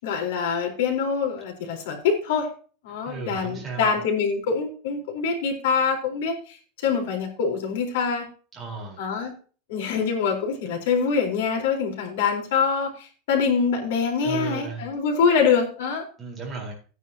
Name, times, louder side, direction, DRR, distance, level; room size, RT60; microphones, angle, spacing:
voice 1, 0.0-2.5 2.8-8.3 9.0-9.3 9.7-16.0, left 5 dB, 70° left, 3 dB, 4.1 m, -24 dB
voice 2, 3.1-4.0 8.5-9.0 14.2-14.8 16.2-16.7, right 4 dB, 10° right, -2 dB, 4.3 m, -34 dB
14.5 x 9.8 x 2.9 m, 0.39 s
supercardioid pair, 175°, 0 cm